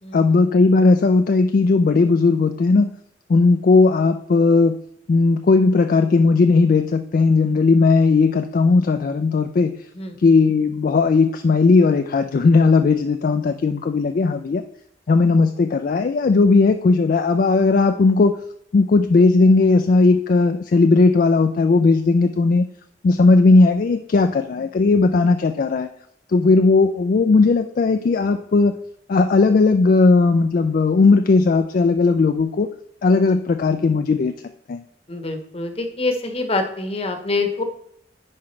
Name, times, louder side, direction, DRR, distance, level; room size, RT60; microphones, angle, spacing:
voice 1, 0.1-2.9 3.3-4.8 5.1-9.7 10.2-14.6 15.1-18.4 18.7-22.7 23.0-25.9 26.3-28.7 29.1-32.7 33.0-34.3 34.7-34.8, left 3 dB, 50° left, 8 dB, 0.3 m, -16 dB
voice 2, 35.1-37.6, left 3 dB, 30° left, 6 dB, 0.9 m, -25 dB
9.7 x 4.8 x 3.2 m, 0.72 s
head